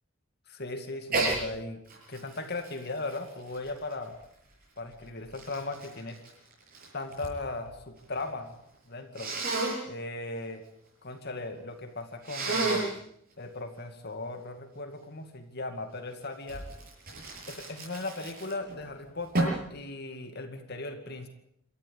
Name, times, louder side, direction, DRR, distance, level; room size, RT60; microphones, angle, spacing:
voice 1, 0.5-1.8 2.1-4.1 4.8-6.2 6.9-8.6 8.9-9.3 9.9-10.6 11.0-12.9 13.4-16.6 17.5-21.3, left 2 dB, 50° left, 6 dB, 2.3 m, -37 dB
Sneeze, 1.1-1.4 1.9-4.2 4.9-7.4 7.7-8.3 9.2-9.8 12.2-13.0 16.5-18.8 19.3-19.7, right 2 dB, 45° right, 7.9 m, -32 dB
28.0 x 14.0 x 8.7 m, 0.75 s
head